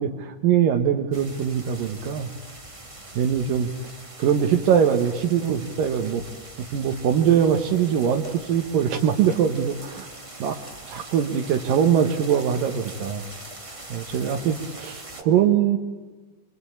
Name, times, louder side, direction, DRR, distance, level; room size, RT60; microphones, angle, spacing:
voice 1, 0.0-2.3 3.2-3.7 4.2-6.2 6.6-10.1 10.4-10.5 10.9-13.2 13.9-15.8, right 8 dB, 85° right, 4 dB, 3.0 m, -22 dB
sound 1, 1.1-15.2, right 2 dB, 20° right, 0.8 m, -42 dB
27.0 x 23.5 x 8.7 m, 1.4 s
omnidirectional pair, 3.8 m